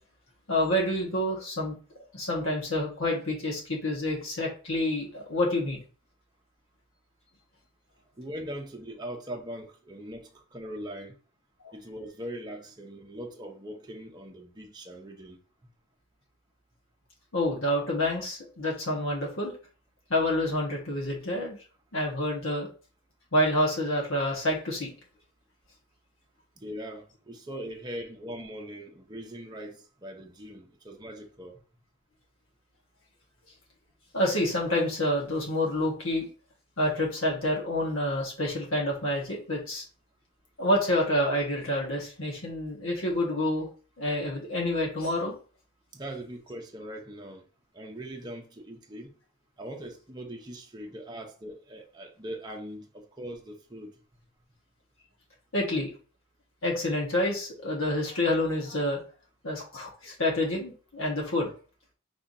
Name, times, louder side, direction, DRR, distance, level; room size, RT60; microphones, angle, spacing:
voice 1, 0.5-1.7 2.1-5.8 17.3-19.5 20.1-21.6 21.9-22.7 23.3-24.9 34.1-36.3 36.8-39.8 40.6-43.7 44.0-45.4 55.5-55.9 56.6-59.0 59.4-61.5, left 1 dB, 65° left, 1.4 m, -28 dB
voice 2, 8.2-11.2 11.7-15.4 26.6-31.6 45.9-47.4 47.7-49.1 49.6-54.0, equal, 20° right, 0.7 m, -41 dB
5.6 x 3.4 x 2.7 m
head